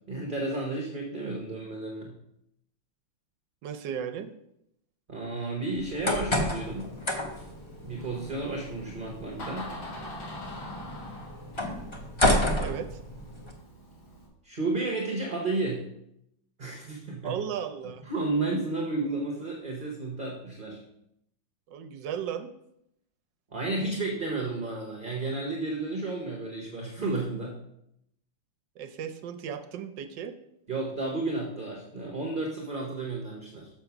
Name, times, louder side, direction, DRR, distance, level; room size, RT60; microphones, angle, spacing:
voice 1, 0.1-2.1 5.1-7.0 7.8-9.7 14.4-15.8 16.6-17.4 18.0-20.8 23.5-27.6 30.7-33.7, right 2 dB, 35° right, 0 dB, 0.9 m, -32 dB
voice 2, 3.6-4.3 12.6-13.0 17.2-18.0 21.7-22.5 28.8-30.3, right 8 dB, 70° right, 9 dB, 1.2 m, -35 dB
sound 1, 5.8-13.5, left 1 dB, 30° left, 0.5 m, -31 dB
Door, 6.6-14.3, left 1 dB, 80° left, 3.0 m, -44 dB
6.9 x 5.0 x 5.8 m, 0.79 s
omnidirectional pair, 2.2 m